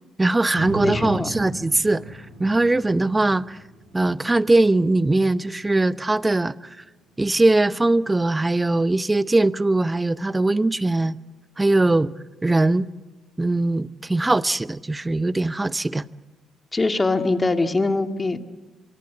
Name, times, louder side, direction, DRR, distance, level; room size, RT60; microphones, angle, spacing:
voice 1, 0.2-3.6 3.9-6.5 7.2-11.2 11.6-12.1 12.4-12.9 13.4-16.1, right 2 dB, 20° right, 0.9 m, -21 dB
sound 1, 0.6-8.7 9.2-9.3, right 2 dB, 85° right, 5.9 m, -38 dB
voice 2, 0.8-1.3 16.7-18.4, left 3 dB, 25° left, 2.1 m, -22 dB
24.5 x 22.5 x 8.1 m
hypercardioid pair, 45°, 0 cm